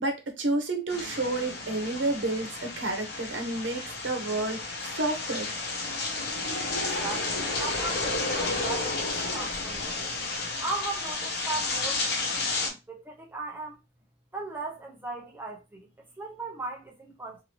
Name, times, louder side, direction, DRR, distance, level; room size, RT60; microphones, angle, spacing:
voice 1, 0.0-4.6 4.9-5.5, right 2 dB, 90° right, 0.9 m, -30 dB
sound 1, 0.9-12.7, left 3 dB, 55° left, 0.7 m, -32 dB
voice 2, 7.0-9.0 9.3-10.1 10.6-13.8 14.3-17.4, right 3 dB, 10° right, 0.7 m, -37 dB
2.8 x 2.6 x 2.9 m
head